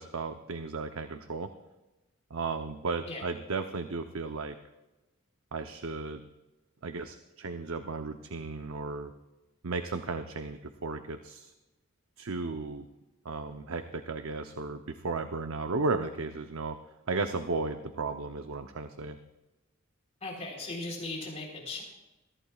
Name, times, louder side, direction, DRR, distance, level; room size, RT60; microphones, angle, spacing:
voice 1, 0.0-1.5 2.3-4.6 5.5-6.2 6.8-9.1 9.6-11.5 12.2-12.9 13.2-16.8 17.1-19.2, right 3 dB, 75° right, 8 dB, 0.7 m, -34 dB
voice 2, 20.2-21.8, left 2 dB, 30° left, -2 dB, 3.7 m, -38 dB
22.0 x 14.5 x 2.4 m, 1.1 s
head